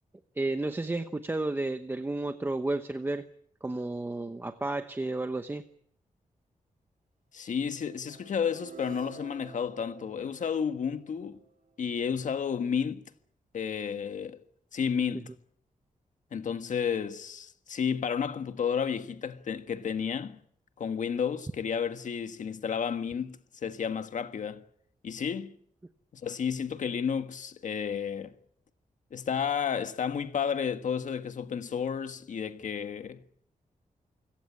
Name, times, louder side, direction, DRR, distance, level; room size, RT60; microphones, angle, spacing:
voice 1, 0.4-3.2 3.6-5.6, right 2 dB, 15° right, 1.0 m, -32 dB
voice 2, 7.3-11.4 11.8-13.0 13.5-14.4 14.7-15.3 16.3-20.4 20.8-24.6 25.0-25.5 26.1-28.3 29.1-33.2, left 7 dB, 70° left, 1.5 m, -32 dB
sound 1, 7.8-11.9, right 6 dB, 85° right, 5.6 m, -50 dB
29.0 x 17.5 x 8.6 m
wide cardioid pair, 175°, 14 cm